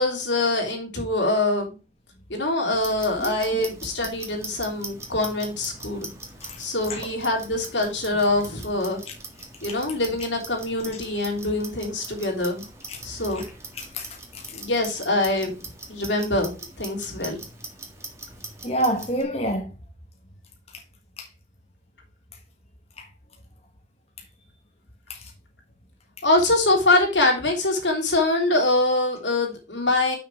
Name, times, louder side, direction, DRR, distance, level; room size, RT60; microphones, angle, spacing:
voice 1, 0.0-1.7 2.3-6.1 6.6-9.0 9.6-12.6 13.0-13.5 14.5-15.5 15.9-16.5 16.8-17.4 26.2-30.2, left 2 dB, 85° left, 3.2 m, -24 dB
Clock, 2.7-19.2, right 3 dB, 15° right, 1.8 m, -42 dB
voice 2, 3.2-3.7 6.4-6.6 6.9-7.0 12.9-13.0 13.3-13.4 13.8-14.1 14.3-14.4 18.6-19.7 21.2-21.3 23.0-23.1 25.1-25.2, equal, 35° left, 1.5 m, -28 dB
6.5 x 6.1 x 4.7 m
head